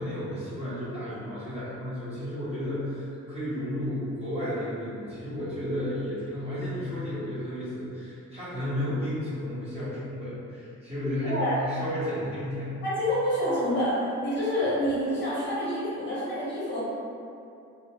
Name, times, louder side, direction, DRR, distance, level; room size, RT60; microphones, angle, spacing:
voice 1, 0.0-12.8, left 1 dB, 20° right, -12 dB, 0.7 m, -32 dB
voice 2, 11.3-11.6 12.8-16.8, equal, 40° left, -9 dB, 0.6 m, -27 dB
2.3 x 2.0 x 2.8 m, 2.6 s
cardioid pair, 170°, 30 cm